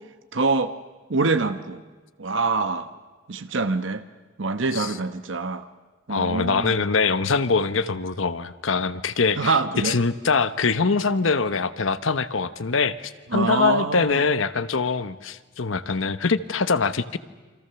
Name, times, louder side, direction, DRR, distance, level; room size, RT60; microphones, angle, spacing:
voice 1, 0.3-0.7 1.1-1.8 2.2-2.9 3.3-4.0 4.4-5.7 6.1-6.8 9.4-10.0 13.3-14.2, right 3 dB, 75° right, 9 dB, 1.0 m, -25 dB
voice 2, 6.1-9.6 9.8-17.2, left 4 dB, 80° left, 13 dB, 1.0 m, -23 dB
28.0 x 25.0 x 6.9 m, 1.3 s
head